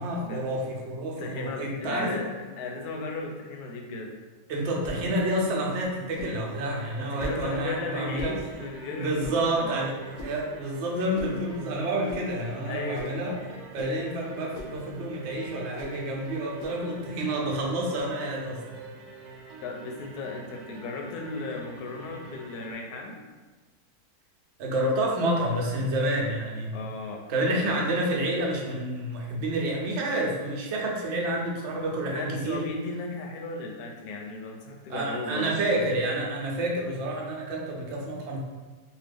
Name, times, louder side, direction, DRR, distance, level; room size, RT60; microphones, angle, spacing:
voice 1, 0.0-2.2 4.5-8.4 8.9-18.6 24.6-26.7 27.3-32.7 34.9-38.4, right 1 dB, 65° right, -2 dB, 0.7 m, -29 dB
voice 2, 1.2-2.3 2.6-4.1 7.0-9.7 12.7-13.2 19.6-23.2 26.7-27.2 32.1-35.5, left 3 dB, 90° left, 1 dB, 1.1 m, -35 dB
sound 1, 4.8-5.0 6.2-6.4 7.2-7.4 8.2-8.4 9.2-9.4 10.2-10.4 11.1-11.4 12.1-12.2 12.9-13.2 13.7-14.0 14.5-14.8 15.8-16.0 16.6-16.8, equal, 70° left, 0.9 m, -38 dB
sound 2, 6.7-22.7, right 3 dB, 85° right, 1.1 m, -46 dB
2.8 x 2.3 x 3.3 m, 1.3 s
omnidirectional pair, 1.6 m